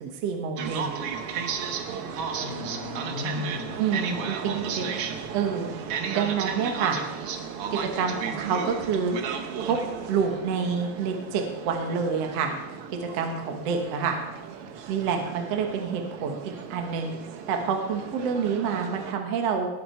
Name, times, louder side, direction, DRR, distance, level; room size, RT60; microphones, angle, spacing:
voice 1, 0.0-1.0 3.8-4.9 5.3-5.7 6.1-7.0 7.7-9.1 9.6-9.8 10.1-12.5 13.1-14.2 14.9-17.1 17.5-19.7, right 6 dB, 55° right, 4 dB, 2.0 m, -27 dB
sound 1, 0.6-19.1, right 6 dB, 80° right, 1.3 m, -34 dB
voice 2, 2.4-4.9, left 5 dB, 70° left, 1 dB, 2.4 m, -38 dB
19.0 x 7.7 x 4.5 m, 0.99 s
omnidirectional pair, 4.0 m